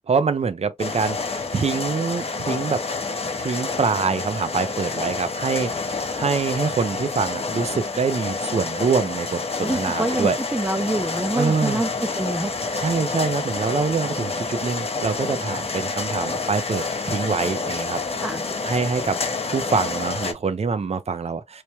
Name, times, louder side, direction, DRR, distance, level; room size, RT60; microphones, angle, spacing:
voice 1, 0.1-2.8 3.4-10.4 11.4-11.8 12.8-18.0 18.6-19.2 19.5-21.6, right 5 dB, 65° right, 0.5 m, -25 dB
sound 1, 0.8-20.3, left 3 dB, 55° left, 0.6 m, -28 dB
voice 2, 9.6-12.5 18.2-18.4, right 1 dB, 15° right, 0.5 m, -26 dB
3.1 x 2.2 x 2.7 m
wide cardioid pair, 70°, 12 cm